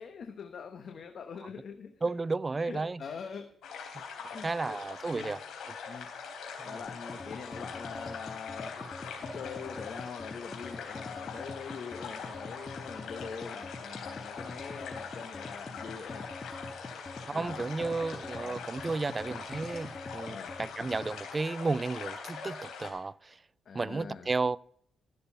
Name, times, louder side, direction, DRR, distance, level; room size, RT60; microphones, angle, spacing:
voice 1, 0.0-1.9 2.6-3.5 4.2-4.8 5.1-5.3 5.9-6.1 6.6-8.8 9.2-16.3 17.3-17.6 18.4-18.6 20.3-20.5 23.6-24.3, left 6 dB, 65° left, 1.2 m, -43 dB
voice 2, 2.0-3.0 4.4-5.4 5.7-5.8 6.6-6.8 17.3-23.4 23.7-24.6, right 3 dB, 30° right, 0.4 m, -33 dB
sound 1, 3.6-22.9, left 5 dB, 90° left, 3.6 m, -43 dB
sound 2, 6.9-21.2, left 3 dB, 35° left, 1.4 m, -44 dB
14.5 x 6.8 x 5.6 m
cardioid pair, 70°, 0 cm